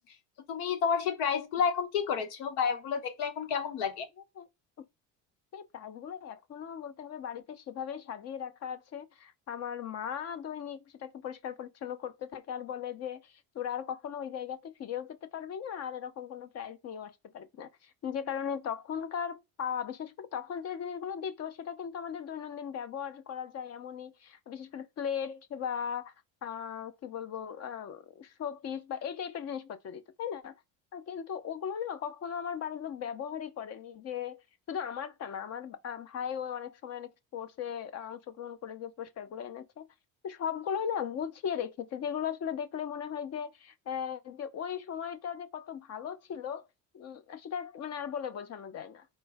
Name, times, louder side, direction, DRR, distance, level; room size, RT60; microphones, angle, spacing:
voice 1, 0.5-4.1, left 6 dB, 90° left, 0.9 m, -30 dB
voice 2, 5.5-26.1 26.4-30.5 30.9-34.4 34.7-39.9 40.2-46.7 46.9-49.1, left 8 dB, 45° left, 0.6 m, -38 dB
4.5 x 2.1 x 3.3 m
cardioid pair, 110°, 35 cm